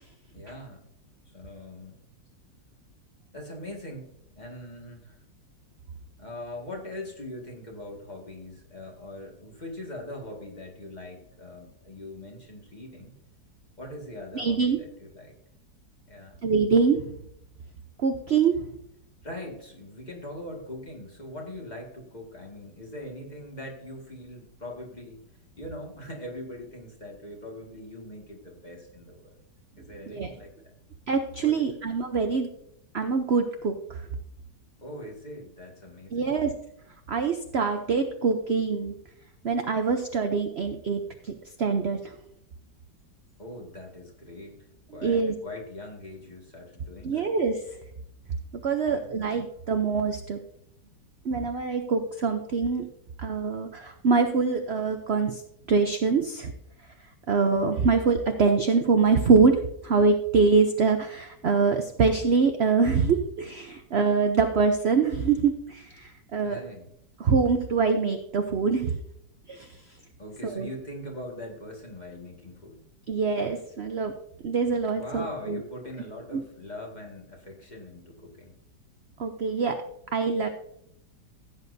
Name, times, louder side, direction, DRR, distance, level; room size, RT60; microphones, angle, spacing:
voice 1, 0.3-0.9 1.3-2.0 3.3-5.2 6.2-13.1 13.8-15.3 16.1-16.4 19.2-25.2 25.6-29.3 29.8-30.7 31.4-31.8 34.8-36.4 43.4-47.3 48.8-49.2 66.4-66.9 70.2-72.8 74.9-78.5, left 1 dB, 25° left, 0 dB, 2.0 m, -41 dB
voice 2, 14.3-14.8 16.4-17.1 18.0-18.6 30.1-30.3 31.1-32.5 32.9-33.7 36.1-36.5 37.1-38.9 39.4-41.3 41.6-42.0 45.0-45.3 47.0-47.6 48.6-50.4 51.2-52.9 53.2-55.4 55.7-56.5 57.3-59.6 59.8-66.6 67.2-69.0 69.5-69.7 70.4-70.7 73.1-74.1 74.4-75.6 76.3-76.4 79.2-79.7 80.1-80.5, right 5 dB, 55° right, 6 dB, 0.7 m, -24 dB
15.5 x 8.3 x 2.7 m, 0.74 s
omnidirectional pair, 1.9 m